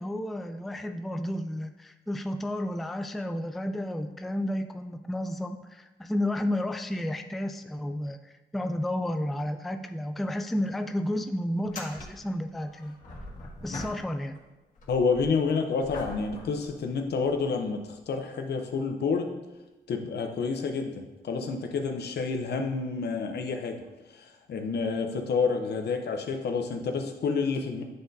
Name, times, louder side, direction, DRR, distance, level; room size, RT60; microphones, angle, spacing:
voice 1, 0.0-13.0 13.6-14.4, left 1 dB, ahead, 6 dB, 0.3 m, -32 dB
sound 1, 10.3-10.4 10.6-10.7 11.6-14.4 14.7-17.4 18.1-18.2 22.4-22.5 23.8-23.9, left 1 dB, 45° left, 1.8 m, -43 dB
voice 2, 14.9-19.3 19.9-20.9 21.2-23.8 24.1-27.8, left 4 dB, 70° left, 4 dB, 0.8 m, -29 dB
9.5 x 3.9 x 2.7 m, 1.1 s
cardioid pair, 85°, 18 cm